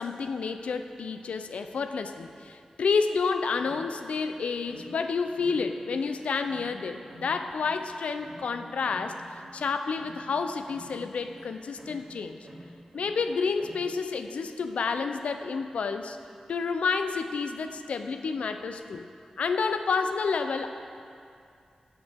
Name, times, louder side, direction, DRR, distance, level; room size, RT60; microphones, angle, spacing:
voice 1, 0.0-12.4 12.9-16.2 16.5-19.1 19.4-20.7, left 5 dB, 90° left, 8 dB, 0.5 m, -30 dB
sound 1, 3.6-5.1 5.3-6.8 7.1-10.4 10.7-12.2 12.4-13.9, right 1 dB, 35° right, 2.1 m, -50 dB
11.5 x 8.1 x 3.5 m, 2.4 s
wide cardioid pair, 95°, 2 cm